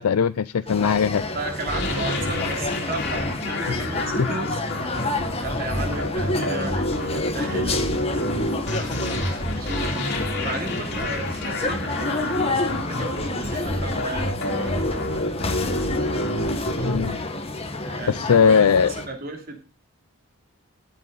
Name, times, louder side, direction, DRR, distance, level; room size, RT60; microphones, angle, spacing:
voice 1, 0.0-1.2 3.7-3.9 4.2-4.3 16.8-17.2 18.1-18.9, left 6 dB, 85° left, 0.5 m, -20 dB
sound 1, 0.7-19.1, left 2 dB, 25° left, 1.4 m, -30 dB
voice 2, 1.3-9.0 9.5-14.8 17.8-19.6, right 3 dB, 45° right, 2.8 m, -35 dB
sound 2, 1.7-17.1, left 1 dB, 50° left, 3.3 m, -28 dB
13.0 x 7.9 x 4.0 m
head